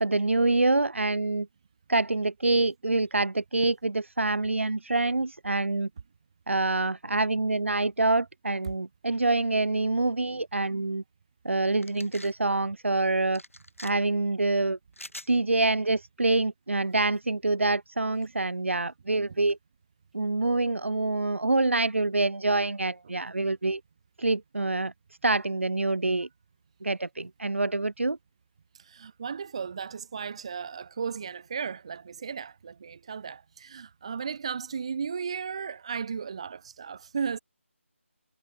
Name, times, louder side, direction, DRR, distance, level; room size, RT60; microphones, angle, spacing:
voice 1, 0.0-1.5 1.9-5.9 6.5-11.0 11.4-13.4 13.8-14.8 15.3-19.6 20.1-23.8 24.2-24.9 25.2-26.3 26.8-28.2, right 2 dB, 65° right, 1.0 m, -26 dB
sound 1, 11.8-12.3 13.3-13.9 14.9-15.3, left 1 dB, 80° left, 4.4 m, -44 dB
voice 2, 28.8-37.4, right 6 dB, 25° right, 0.4 m, -35 dB
figure-of-eight pair, 160°, 7 cm